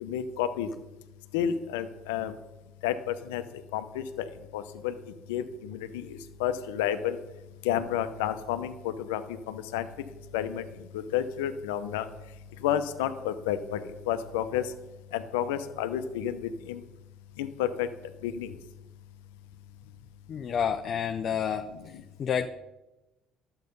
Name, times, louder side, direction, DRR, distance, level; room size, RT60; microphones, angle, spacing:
voice 1, 0.0-0.7 1.3-2.3 2.8-3.4 3.7-4.3 4.5-4.9 5.3-7.2 7.6-9.2 9.5-9.9 10.3-10.6 10.9-12.1 12.6-13.8 14.1-14.7 15.1-16.8 17.4-17.9 18.2-18.5, left 10 dB, 85° left, 10 dB, 0.8 m, -30 dB
voice 2, 20.3-21.6 22.2-22.5, left 8 dB, 50° left, 6 dB, 0.7 m, -29 dB
11.5 x 8.0 x 5.4 m, 1.0 s
hypercardioid pair, 65°, 0 cm